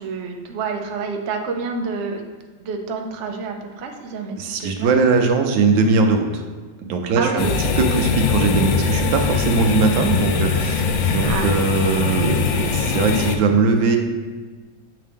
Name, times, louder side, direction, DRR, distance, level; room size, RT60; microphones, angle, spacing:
voice 1, 0.0-2.3 2.6-4.9 7.2-7.6 11.3-11.6, right 4 dB, 70° right, 3 dB, 0.6 m, -28 dB
voice 2, 4.4-6.4 6.9-7.5 7.8-14.0, right 4 dB, 85° right, 4 dB, 1.4 m, -20 dB
sound 1, 7.4-13.4, left 5 dB, 90° left, 1.3 m, -21 dB
7.6 x 3.6 x 3.4 m, 1.4 s
omnidirectional pair, 2.0 m